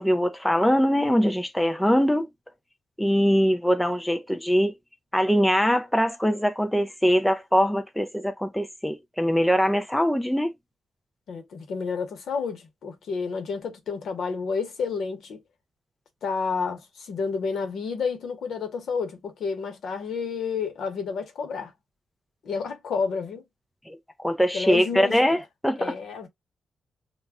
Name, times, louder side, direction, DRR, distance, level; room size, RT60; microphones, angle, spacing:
voice 1, 0.0-2.3 3.0-4.7 5.1-10.5 23.9-25.9, equal, 5° left, 0.3 m, -22 dB
voice 2, 11.3-15.4 16.2-21.7 22.4-23.4 24.5-25.2 25.8-26.3, left 5 dB, 70° left, 0.8 m, -30 dB
2.3 x 2.1 x 3.4 m
cardioid pair, 125°, 0 cm